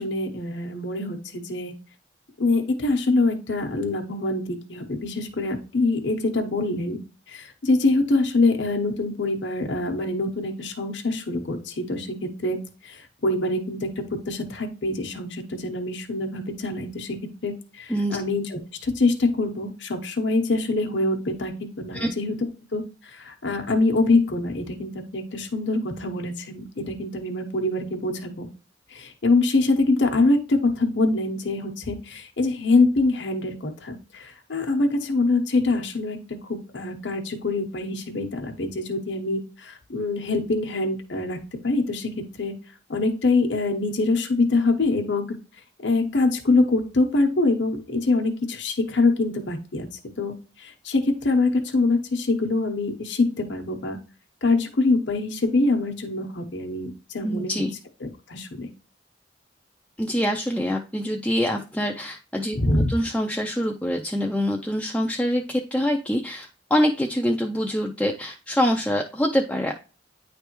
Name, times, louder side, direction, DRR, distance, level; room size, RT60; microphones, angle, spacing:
voice 1, 0.0-1.7 2.4-7.0 7.3-12.6 12.8-13.9 14.3-17.2 17.4-22.3 22.7-28.5 28.9-36.2 36.4-41.4 41.6-42.1 42.4-42.5 42.9-45.3 45.8-49.9 50.2-54.0 54.4-57.6 58.3-58.7 62.5-62.9, left 2 dB, 70° left, 3 dB, 1.0 m, -24 dB
voice 2, 57.2-57.7 60.0-69.7, equal, 5° left, 1 dB, 0.4 m, -25 dB
9.6 x 3.3 x 3.0 m, 0.34 s
head